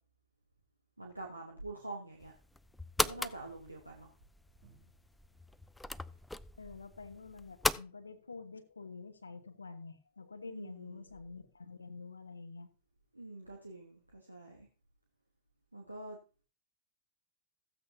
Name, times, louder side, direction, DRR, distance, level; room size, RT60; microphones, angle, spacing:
voice 1, 1.0-2.3 3.0-4.1 10.4-11.0 13.1-14.7 15.7-16.2, right 2 dB, 85° right, 0 dB, 1.4 m, -46 dB
sound 1, 1.9-2.5 3.2-4.0 4.6-5.2 5.5-5.6 5.9-6.3, right 4 dB, 45° right, 4.8 m, -67 dB
sound 2, 2.2-7.8, left 2 dB, 5° left, 0.4 m, -38 dB
voice 2, 6.6-12.7, left 4 dB, 75° left, 8 dB, 1.2 m, -48 dB
15.0 x 8.3 x 2.8 m, 0.35 s
figure-of-eight pair, 90°, 0 cm